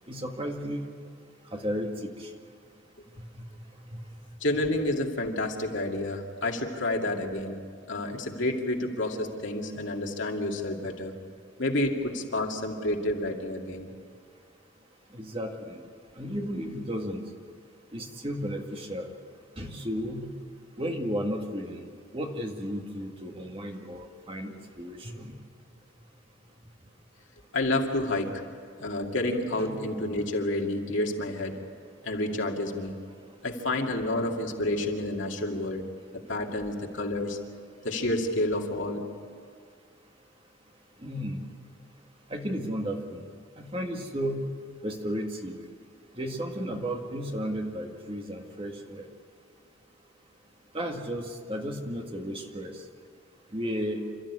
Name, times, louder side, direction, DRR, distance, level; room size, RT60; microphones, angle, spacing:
voice 1, 0.1-0.9 1.5-2.3 3.4-3.5 3.9-4.0 15.1-15.8 16.2-17.2 17.9-19.1 19.6-20.3 20.8-21.8 22.1-25.4 29.6-29.8 41.0-41.4 42.3-43.2 43.6-44.5 44.8-45.6 46.2-49.1 50.7-52.8 53.5-54.0, equal, 25° right, 2 dB, 1.9 m, -33 dB
voice 2, 4.4-7.6 7.9-11.1 11.6-13.9 27.5-28.3 28.8-31.5 32.0-32.9 33.4-35.9 36.3-37.4 37.8-39.1, left 1 dB, 70° left, 1 dB, 2.4 m, -29 dB
28.5 x 13.5 x 9.8 m, 2.1 s
head